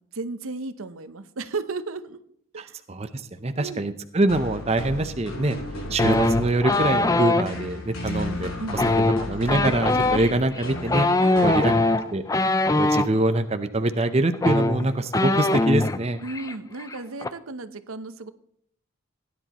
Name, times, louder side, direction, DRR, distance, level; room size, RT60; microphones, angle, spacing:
voice 1, 0.0-2.2 2.5-2.8 3.6-3.8 5.9-6.0 8.6-8.8 11.2-12.1 16.2-18.3, right 3 dB, 80° right, 12 dB, 0.8 m, -33 dB
voice 2, 2.6-5.6 5.9-8.8 9.2-11.1 11.4-11.7 12.1-12.2 12.8-16.2, right 2 dB, 30° right, 9 dB, 0.6 m, -24 dB
sound 1, 4.3-12.1, left 1 dB, 90° left, 5.3 m, -34 dB
sound 2, 6.0-7.5 8.7-13.1 14.0-14.1 14.3-16.0 16.3-16.5 16.8-17.3, left 2 dB, 15° left, 0.4 m, -22 dB
17.0 x 10.5 x 3.0 m, 0.68 s
head